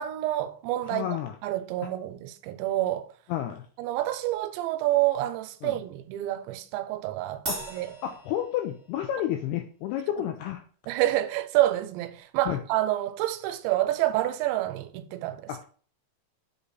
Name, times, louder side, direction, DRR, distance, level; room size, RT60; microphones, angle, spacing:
voice 1, 0.0-1.1 1.4-3.1 3.8-7.9 10.9-15.5, right 14 dB, 85° right, 2.8 m, -28 dB
voice 2, 0.8-1.3 3.3-3.7 5.6-5.8 7.5-10.6 12.5-12.6 15.5-15.6, left 11 dB, 85° left, 2.3 m, -31 dB
Crash cymbal, 7.5-9.1, right 2 dB, 25° right, 0.9 m, -37 dB
8.2 x 3.6 x 4.0 m
omnidirectional pair, 5.1 m